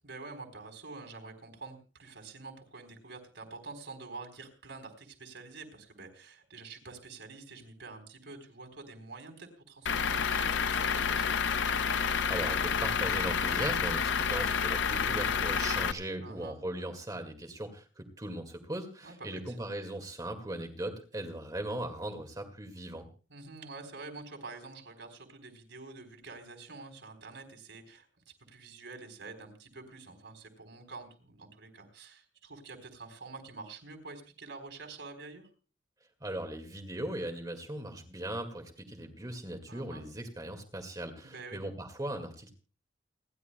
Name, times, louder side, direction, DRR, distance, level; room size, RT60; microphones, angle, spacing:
voice 1, 0.0-11.4 16.2-16.6 19.0-19.5 23.3-35.5 39.7-40.1 41.2-41.6, right 3 dB, 75° right, 3 dB, 4.0 m, -47 dB
Truck / Idling, 9.9-15.9, left 6 dB, 75° left, 0.6 m, -29 dB
voice 2, 11.9-23.1 36.2-42.5, right 1 dB, 20° right, 4 dB, 1.9 m, -39 dB
29.0 x 11.0 x 2.2 m, 0.37 s
head